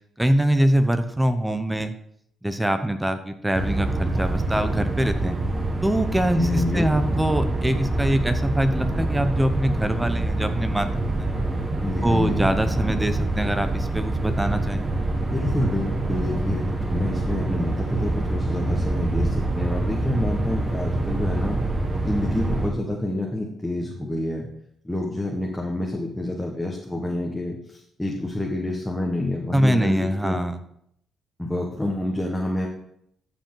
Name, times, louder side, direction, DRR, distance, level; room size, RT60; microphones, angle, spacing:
voice 1, 0.2-1.9 2.4-5.4 5.8-11.3 12.0-14.8 29.5-30.6, right 1 dB, 10° right, 9 dB, 0.7 m, -23 dB
sound 1, 3.5-22.7, right 2 dB, 30° right, 1.7 m, -25 dB
voice 2, 6.3-6.9 11.8-12.5 15.3-21.6 22.0-24.5 24.8-30.4 31.4-32.7, left 1 dB, 10° left, -1 dB, 1.3 m, -28 dB
14.0 x 5.1 x 3.9 m, 0.72 s
cardioid pair, 90°, 0 cm